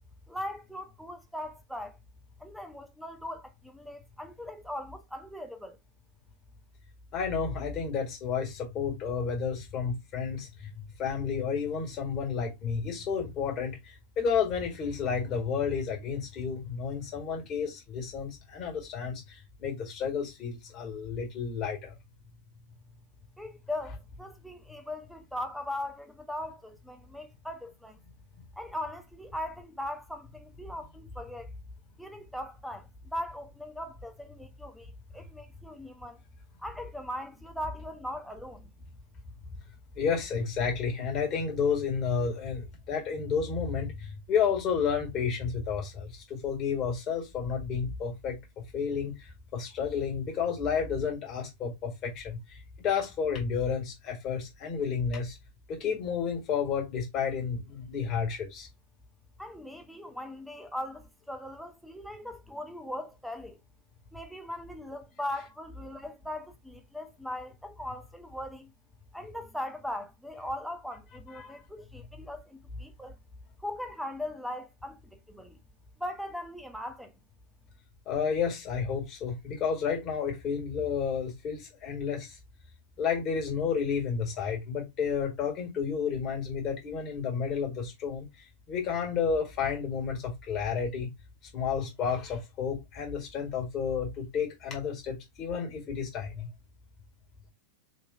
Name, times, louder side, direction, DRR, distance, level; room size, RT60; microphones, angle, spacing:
voice 1, 0.3-2.0 2.4-5.8 23.4-28.0 28.6-31.5 32.0-36.2 36.6-38.7 59.4-63.6 64.1-68.7 69.1-73.1 73.6-75.6 76.0-77.1, left 1 dB, ahead, 0.6 m, -39 dB
voice 2, 7.1-10.7 11.0-21.9 39.9-48.4 48.7-55.4 55.7-58.7 71.3-71.6 78.0-82.4 83.0-88.2 88.7-91.1 91.5-96.5, left 6 dB, 35° left, 1.7 m, -31 dB
4.1 x 3.0 x 2.3 m
figure-of-eight pair, 90°, 0 cm